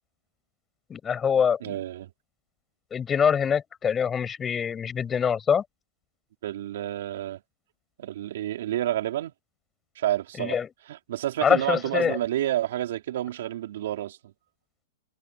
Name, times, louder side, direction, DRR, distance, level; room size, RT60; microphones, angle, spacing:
voice 1, 0.9-1.7 2.9-5.6 10.4-10.7 11.4-12.2, left 7 dB, 15° left, 6.2 m, -24 dB
voice 2, 1.6-2.1 6.4-7.4 8.0-9.3 10.0-10.6 10.9-14.3, right 13 dB, 65° right, 4.4 m, -29 dB
hypercardioid pair, 140°, 0 cm